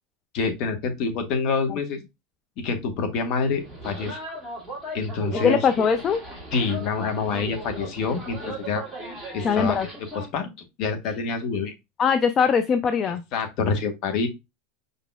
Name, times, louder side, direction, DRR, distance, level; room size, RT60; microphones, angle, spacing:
voice 1, 0.3-2.0 2.6-4.2 4.9-5.6 6.5-8.8 9.3-9.8 10.3-10.5 10.8-11.7 13.3-14.3, left 4 dB, 50° left, 1.2 m, -26 dB
sound 1, 3.5-10.3, right 1 dB, ahead, 2.3 m, -37 dB
voice 2, 5.3-6.2 9.4-9.9 12.0-13.2, left 6 dB, 25° left, 0.4 m, -21 dB
5.3 x 4.0 x 2.3 m
supercardioid pair, 145°, 0 cm